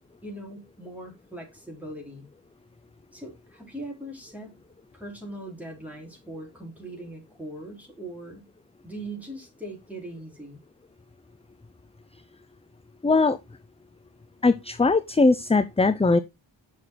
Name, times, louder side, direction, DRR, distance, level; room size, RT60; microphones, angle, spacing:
voice 1, 0.2-2.3 3.1-4.6 4.9-8.5 8.8-10.6, right 1 dB, 5° right, 4.1 m, -40 dB
voice 2, 13.0-13.4 14.4-16.2, left 3 dB, 15° left, 0.4 m, -20 dB
6.6 x 6.1 x 3.8 m
wide cardioid pair, 80°, 45 cm